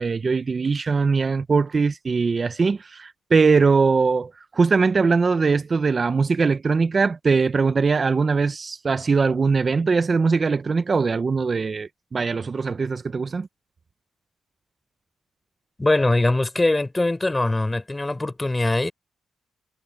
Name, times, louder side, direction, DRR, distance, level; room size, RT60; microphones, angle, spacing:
voice 1, 0.0-13.5, right 4 dB, 40° right, 0.7 m, -21 dB
voice 2, 15.8-18.9, left 2 dB, 15° left, 4.1 m, -22 dB
cardioid pair, 90°, 0 cm